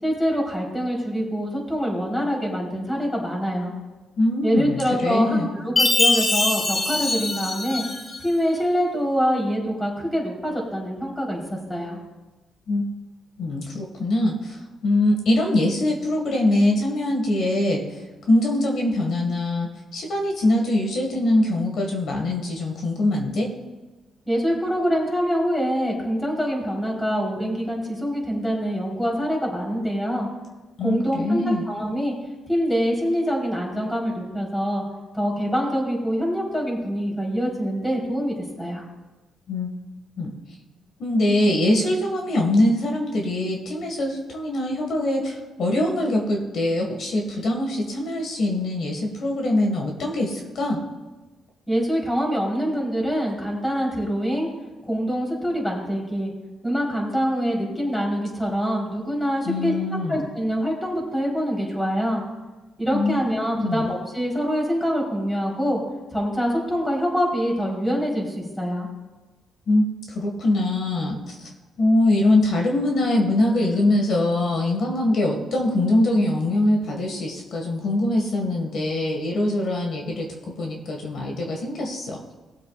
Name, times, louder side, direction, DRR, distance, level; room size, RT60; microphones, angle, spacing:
voice 1, 0.0-3.7 4.4-7.8 8.2-12.0 24.3-30.3 30.8-32.1 32.5-34.8 35.1-38.8 51.7-54.5 54.8-56.3 56.6-59.7 60.1-62.2 62.8-65.8 66.1-68.9, equal, 10° left, -2 dB, 3.9 m, -25 dB
voice 2, 4.2-5.5 12.7-12.9 13.4-18.0 18.3-23.5 30.8-31.7 39.5-39.7 40.2-40.3 41.0-50.8 59.5-60.2 62.9-63.1 63.6-63.9 69.7-71.5 71.8-82.3, left 1 dB, 65° left, 1 dB, 1.8 m, -23 dB
Chime, 5.8-8.2, left 2 dB, 35° left, 1.7 m, -22 dB
19.0 x 7.7 x 2.5 m, 1.2 s
cardioid pair, 90°, 0 cm